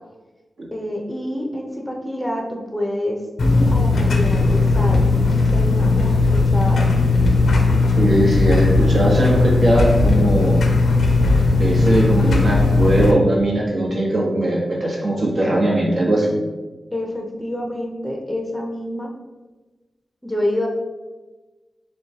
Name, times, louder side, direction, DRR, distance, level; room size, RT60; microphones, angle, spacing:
voice 1, 0.7-6.9 16.9-19.1 20.2-20.7, left 1 dB, 10° left, 1 dB, 0.6 m, -27 dB
sound 1, 3.4-13.1, left 3 dB, 80° left, 0.5 m, -17 dB
voice 2, 8.0-10.6 11.4-16.4, right 1 dB, 60° right, -2 dB, 1.1 m, -19 dB
6.7 x 2.2 x 2.9 m, 1.2 s
wide cardioid pair, 80°, 0 cm